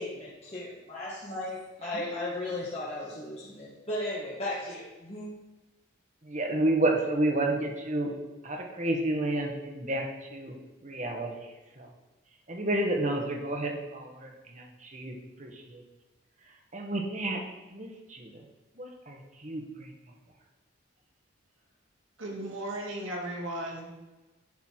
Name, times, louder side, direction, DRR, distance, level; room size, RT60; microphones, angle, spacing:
voice 1, 0.0-5.3, left 1 dB, 30° left, -7 dB, 1.4 m, -36 dB
voice 2, 1.8-2.2 6.2-8.1 8.4-10.5 10.8-11.9 12.5-15.8 16.5-17.4 17.7-18.4 18.7-19.9, right 1 dB, 35° right, 2 dB, 1.3 m, -31 dB
voice 3, 22.2-23.9, right 1 dB, 80° right, -2 dB, 2.3 m, -36 dB
10.5 x 5.6 x 4.5 m, 1.1 s
head